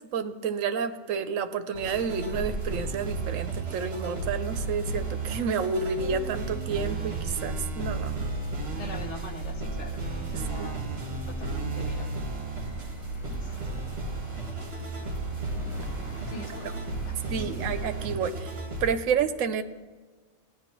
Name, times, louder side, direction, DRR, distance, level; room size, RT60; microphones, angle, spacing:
voice 1, 0.1-8.3 10.3-10.7 16.3-16.7 17.3-19.6, right 6 dB, 75° right, 10 dB, 1.0 m, -30 dB
sound 1, 1.7-18.9, right 3 dB, 50° right, 1.5 m, -34 dB
sound 2, 1.8-18.1, right 1 dB, 25° left, 1.1 m, -42 dB
voice 2, 8.7-10.0 10.3-10.9 11.3-12.2 13.2-13.7 16.3-16.8 17.2-17.6, left 3 dB, 65° left, 2 dB, 1.4 m, -43 dB
17.0 x 10.0 x 3.0 m, 1.4 s
omnidirectional pair, 1.4 m